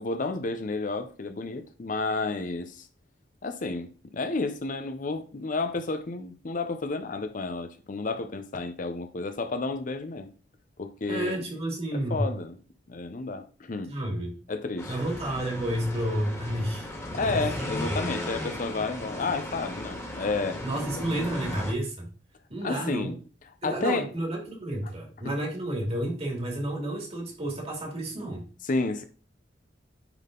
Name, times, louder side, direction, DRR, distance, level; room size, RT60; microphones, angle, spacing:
voice 1, 0.0-2.9 3.4-10.3 10.8-11.4 11.9-12.6 12.9-13.9 14.5-14.9 17.1-20.6 22.6-23.2 23.6-24.1 28.7-29.0, left 3 dB, 45° left, 0.6 m, -31 dB
voice 2, 11.1-12.3 13.9-14.3 14.9-16.9 17.2-17.4 17.8-18.0 20.6-22.1 22.5-23.1 23.6-28.4, right 1 dB, 35° right, 2.3 m, -31 dB
sound 1, 14.8-21.7, left 1 dB, 15° left, 1.8 m, -36 dB
9.1 x 3.8 x 3.7 m
head